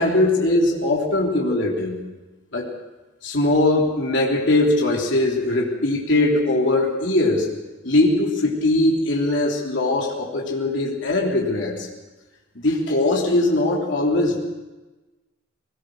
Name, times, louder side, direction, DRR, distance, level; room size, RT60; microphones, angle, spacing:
voice 1, 0.0-2.0 2.5-2.7 3.2-7.5 7.8-11.9 12.6-14.4, left 2 dB, 65° left, -2 dB, 3.5 m, -20 dB
21.0 x 19.5 x 6.6 m, 1.1 s
head